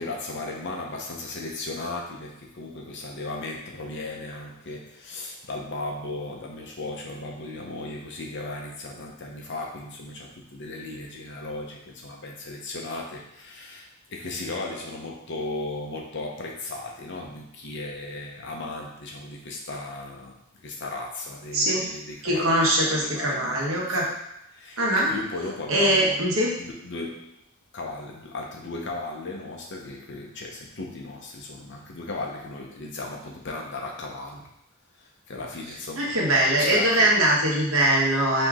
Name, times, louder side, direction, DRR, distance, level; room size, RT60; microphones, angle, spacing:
voice 1, 0.0-24.1 24.5-26.2 26.6-27.3 27.7-34.5 35.0-36.2 36.6-37.1, left 2 dB, 55° left, 0 dB, 0.9 m, -36 dB
voice 2, 22.2-24.1 24.8-25.1 25.7-26.5 36.0-38.5, right 1 dB, 70° right, -3 dB, 1.2 m, -22 dB
4.6 x 3.0 x 3.7 m, 0.80 s
head